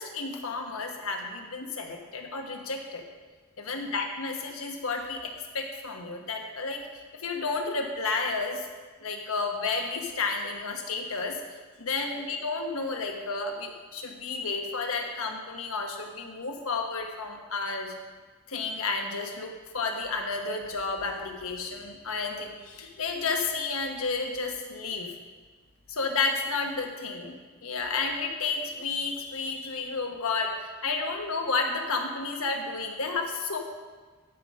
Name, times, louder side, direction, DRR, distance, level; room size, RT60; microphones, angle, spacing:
voice 1, 0.0-3.0 3.6-6.9 7.1-8.7 9.0-17.9 18.5-25.1 25.9-27.3 27.6-33.6, left 4 dB, 75° left, 3 dB, 1.3 m, -31 dB
13.0 x 5.1 x 5.4 m, 1.4 s
head